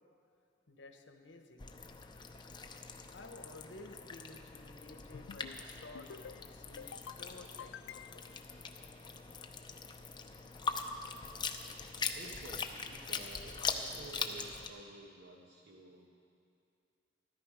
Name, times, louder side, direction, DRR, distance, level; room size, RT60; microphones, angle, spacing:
voice 1, 0.7-1.7 3.1-8.4, left 2 dB, 70° left, 5 dB, 1.1 m, -53 dB
sound 1, 1.6-14.7, left 5 dB, 25° left, 0.6 m, -42 dB
sound 2, 5.1-5.6 5.9-6.4 6.8-7.2 7.6-8.4, left 8 dB, 85° left, 0.4 m, -49 dB
voice 2, 12.1-16.1, right 2 dB, 65° right, -1 dB, 1.1 m, -52 dB
14.0 x 12.5 x 5.0 m, 2.4 s
head